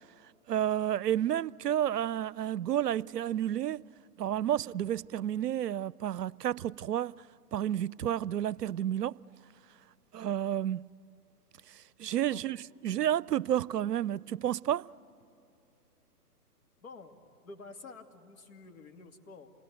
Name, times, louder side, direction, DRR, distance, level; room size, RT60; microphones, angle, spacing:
voice 1, 0.5-3.8 4.2-7.2 7.5-9.2 10.1-10.9 11.7-12.6 12.8-14.9, right 11 dB, 80° right, 0.5 m, -31 dB
voice 2, 16.8-17.2 17.4-19.5, left 3 dB, 60° left, 2.5 m, -49 dB
28.5 x 20.0 x 9.1 m
figure-of-eight pair, 130°, 46 cm